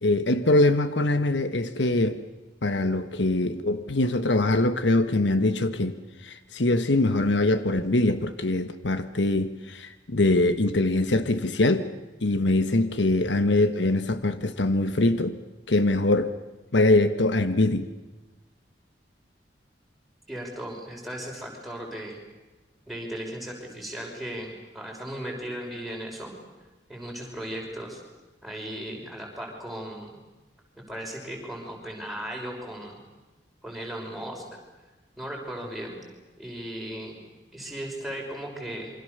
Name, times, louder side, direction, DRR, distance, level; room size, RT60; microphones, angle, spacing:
voice 1, 0.0-2.2 2.6-6.0 6.2-11.9 12.2-15.4 15.7-16.3 16.7-17.9, left 2 dB, 80° left, 10 dB, 1.3 m, -23 dB
voice 2, 20.3-22.2 22.9-26.3 26.9-28.0 28.4-30.2 30.9-33.0 33.6-34.4 35.2-36.0 36.4-37.2 37.5-38.9, right 1 dB, ahead, -2 dB, 5.8 m, -36 dB
28.0 x 24.5 x 6.8 m, 1.2 s
head